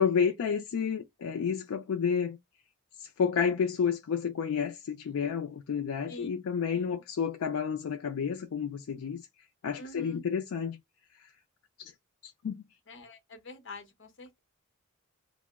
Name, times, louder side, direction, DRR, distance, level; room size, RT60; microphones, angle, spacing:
voice 1, 0.0-2.4 3.0-9.3 9.6-10.8 11.2-11.3 11.8-11.9 12.2-12.6, left 6 dB, 75° left, 0.4 m, -30 dB
voice 2, 9.8-10.2 12.9-14.4, left 1 dB, 55° left, 0.8 m, -46 dB
2.8 x 2.0 x 3.4 m
head